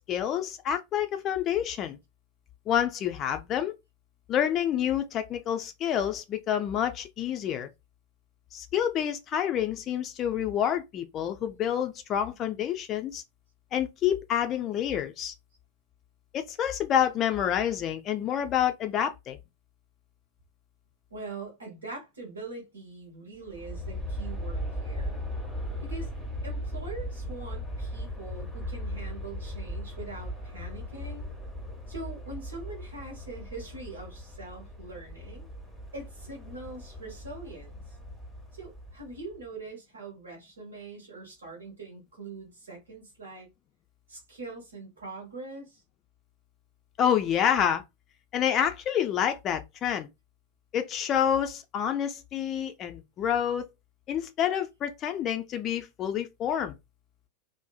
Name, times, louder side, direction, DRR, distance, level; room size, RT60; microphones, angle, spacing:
voice 1, 0.0-2.0 2.7-3.7 4.3-7.7 8.5-13.2 13.7-15.3 16.3-19.4 47.0-47.8 48.3-50.1 50.7-53.6 54.1-56.7, left 9 dB, 30° left, 0.3 m, -28 dB
voice 2, 21.1-25.2 25.8-26.1 26.4-31.3 31.9-35.5 35.9-38.0 38.5-43.5 44.1-45.8, right 3 dB, 70° right, 1.0 m, -43 dB
Aircraft, 23.4-39.4, equal, 5° right, 0.7 m, -38 dB
2.6 x 2.1 x 2.3 m
figure-of-eight pair, 90°, 0 cm